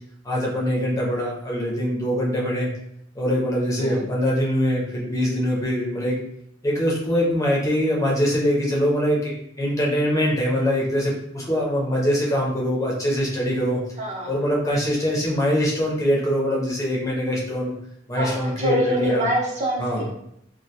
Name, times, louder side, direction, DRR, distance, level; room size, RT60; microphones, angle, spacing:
voice 1, 0.2-2.7 3.2-6.1 6.6-9.3 9.6-13.8 14.3-17.7 18.1-19.2 19.8-20.0, equal, 15° left, -4 dB, 0.4 m, -23 dB
voice 2, 14.0-14.4 18.1-20.1, equal, 35° right, -2 dB, 0.5 m, -25 dB
2.3 x 2.1 x 2.7 m, 0.75 s
head